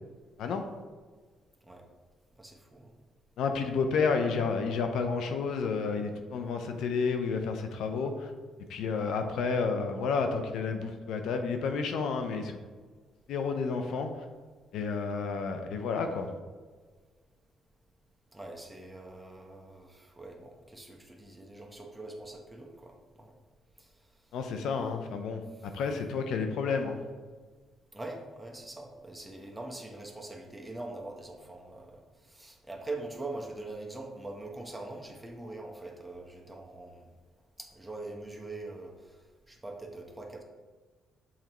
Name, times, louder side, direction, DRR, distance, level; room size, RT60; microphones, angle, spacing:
voice 1, 2.4-2.9 18.3-23.3 23.8-23.9 25.6-25.7 27.9-37.1 37.6-40.4, right 2 dB, 10° right, 1 dB, 1.0 m, -43 dB
voice 2, 3.4-8.3 8.7-12.6 13.3-14.1 14.7-16.3 24.3-25.4 25.7-27.0, left 5 dB, 80° left, 6 dB, 0.6 m, -30 dB
7.2 x 4.3 x 3.0 m, 1.4 s
cardioid pair, 90°, 0 cm